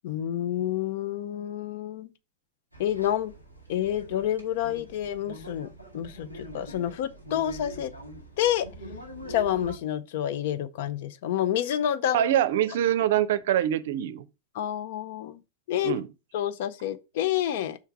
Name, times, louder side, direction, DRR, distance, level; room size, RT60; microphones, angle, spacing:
voice 1, 0.0-2.1 2.8-3.3 3.7-7.9 8.4-8.7 9.3-12.2 14.5-15.4 15.7-16.0 16.3-17.8, left 11 dB, 50° left, 0.6 m, -28 dB
sound 1, 2.7-9.8, equal, 90° left, 1.9 m, -44 dB
voice 2, 12.1-14.3 15.8-16.1, right 11 dB, 55° right, 0.5 m, -24 dB
5.8 x 4.5 x 4.7 m
figure-of-eight pair, 90°, 0 cm